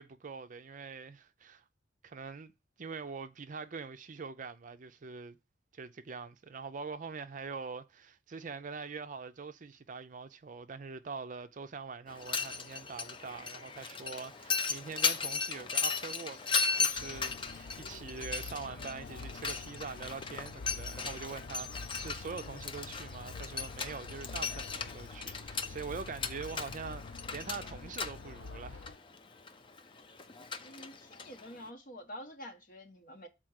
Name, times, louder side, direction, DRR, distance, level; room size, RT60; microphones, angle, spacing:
voice 1, 0.0-1.6 2.0-2.5 2.8-5.4 5.7-28.9, right 5 dB, 45° right, 0.5 m, -44 dB
Mechanisms, 12.1-31.7, left 5 dB, 30° left, 0.6 m, -37 dB
sound 1, 17.0-29.0, left 3 dB, 80° left, 0.5 m, -47 dB
voice 2, 30.6-33.3, equal, 50° left, 1.2 m, -48 dB
6.0 x 4.3 x 6.4 m
head